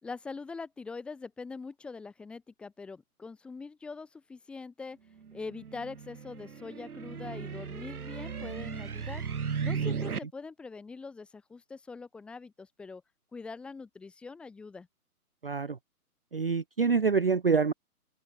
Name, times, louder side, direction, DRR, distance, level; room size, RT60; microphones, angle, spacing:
voice 1, 0.0-5.0 5.3-9.2 9.6-13.0 13.3-14.9, left 4 dB, ahead, 2.1 m, -43 dB
sound 1, 5.2-10.2, right 6 dB, 70° right, 2.4 m, -36 dB
voice 2, 15.4-15.8 16.3-17.7, right 5 dB, 40° right, 0.6 m, -26 dB
hypercardioid pair, 175°, 46 cm